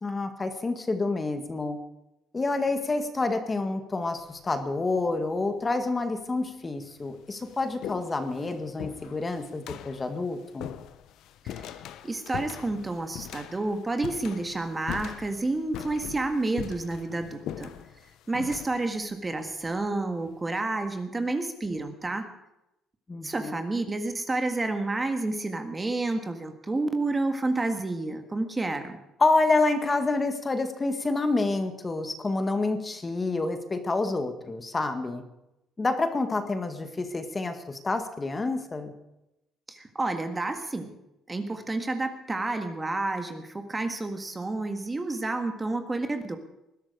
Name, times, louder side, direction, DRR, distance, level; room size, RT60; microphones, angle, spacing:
voice 1, 0.0-1.8 2.3-10.7 23.1-23.6 29.2-35.2 35.8-38.9, left 3 dB, 20° left, 8 dB, 1.8 m, -28 dB
sound 1, 4.0-4.5 5.4-5.5 6.4-6.5 6.8-20.4, left 11 dB, 70° left, 0.9 m, -42 dB
voice 2, 12.0-17.7 18.3-22.3 23.2-29.0 39.7-40.9 41.3-46.4, right 2 dB, 15° right, 7 dB, 1.6 m, -30 dB
20.5 x 12.5 x 5.0 m, 0.90 s
cardioid pair, 130°, 0 cm